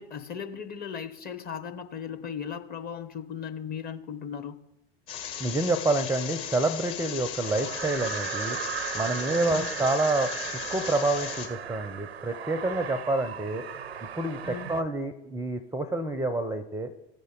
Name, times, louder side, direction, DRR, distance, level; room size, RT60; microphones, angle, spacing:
voice 1, 0.0-4.6 9.3-9.7 14.4-14.7, left 7 dB, 30° left, 0.7 m, -37 dB
sound 1, 5.1-11.5, left 8 dB, 60° left, 1.8 m, -37 dB
voice 2, 5.4-8.6 8.9-10.3 10.7-13.6 14.2-16.9, right 2 dB, 10° right, 0.5 m, -28 dB
sound 2, 7.4-14.8, right 8 dB, 75° right, 0.6 m, -36 dB
15.0 x 5.2 x 3.8 m
figure-of-eight pair, 70°, 31 cm